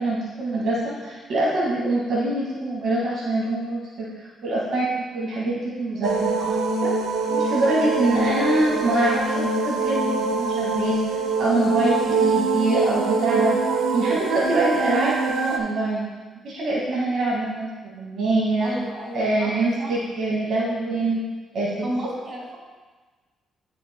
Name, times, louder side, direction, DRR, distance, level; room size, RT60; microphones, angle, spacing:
voice 1, 0.0-6.3 6.8-6.9 7.3-13.6 13.9-16.1 16.4-18.7 19.1-21.2 21.5-21.9, right 2 dB, 65° right, -6 dB, 2.0 m, -24 dB
sound 1, 6.0-15.6, right 4 dB, 85° right, 0.8 m, -24 dB
voice 2, 18.6-19.5 19.8-20.0 21.8-22.6, equal, 35° right, -3 dB, 2.4 m, -32 dB
12.5 x 5.9 x 2.2 m, 1.3 s
cardioid pair, 90°, 0 cm